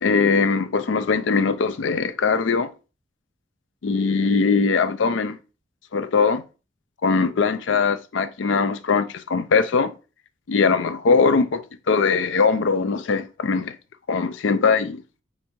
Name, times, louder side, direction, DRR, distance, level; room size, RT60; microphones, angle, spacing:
voice 1, 0.0-2.7 3.8-5.4 5.9-6.4 7.0-9.9 10.5-13.7 14.1-15.0, left 5 dB, 80° left, 0.4 m, -21 dB
4.4 x 3.5 x 2.7 m
head